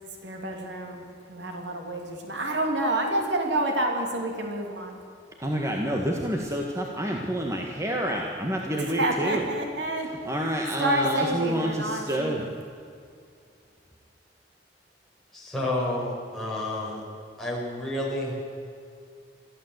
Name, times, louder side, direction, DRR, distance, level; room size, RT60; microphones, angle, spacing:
voice 1, 0.2-5.0 8.8-10.1 10.8-12.5, right 1 dB, 75° right, 2 dB, 3.2 m, -28 dB
voice 2, 5.4-9.4 10.3-12.4, right 1 dB, 15° right, 0 dB, 1.7 m, -28 dB
voice 3, 15.3-17.0 17.4-18.3, left 1 dB, ahead, -5 dB, 6.4 m, -30 dB
22.5 x 15.0 x 8.2 m, 2.4 s
head